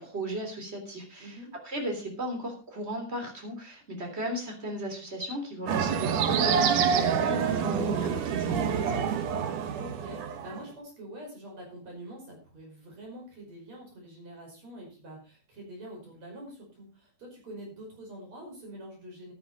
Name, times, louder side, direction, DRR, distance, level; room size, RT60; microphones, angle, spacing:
voice 1, 0.0-1.4 1.6-9.1, equal, 15° right, 3 dB, 2.8 m, -36 dB
voice 2, 1.2-1.5 9.8-19.3, right 1 dB, 35° right, 0 dB, 6.1 m, -45 dB
sound 1, 5.7-10.6, right 7 dB, 75° right, 1.8 m, -27 dB
13.5 x 10.5 x 4.1 m, 0.34 s
omnidirectional pair, 5.5 m